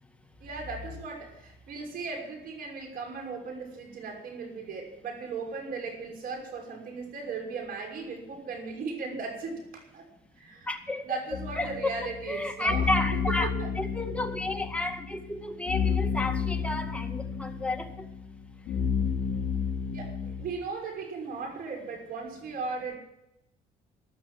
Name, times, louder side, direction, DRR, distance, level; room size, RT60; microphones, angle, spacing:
voice 1, 0.4-10.0 10.4-10.7 11.0-12.8 13.4-13.7 19.9-23.0, right 4 dB, 60° right, 2 dB, 6.0 m, -37 dB
voice 2, 10.7-11.2 11.5-12.0 12.3-13.5 13.8-18.1, left 1 dB, 5° left, 3 dB, 2.0 m, -31 dB
sound 1, 11.3-20.4, left 6 dB, 65° left, 4.4 m, -31 dB
14.0 x 12.0 x 7.7 m, 0.84 s
cardioid pair, 110°, 17 cm